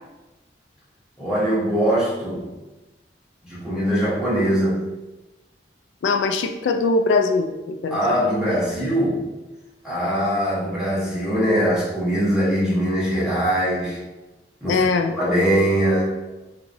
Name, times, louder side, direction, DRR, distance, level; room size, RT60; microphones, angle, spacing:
voice 1, 1.2-2.5 3.4-4.8 7.9-9.2 9.8-14.0 14.6-16.1, equal, 5° right, -9 dB, 1.2 m, -22 dB
voice 2, 6.0-8.0 14.7-15.1, left 3 dB, 80° left, 6 dB, 0.3 m, -21 dB
3.6 x 3.0 x 2.6 m, 1.1 s
head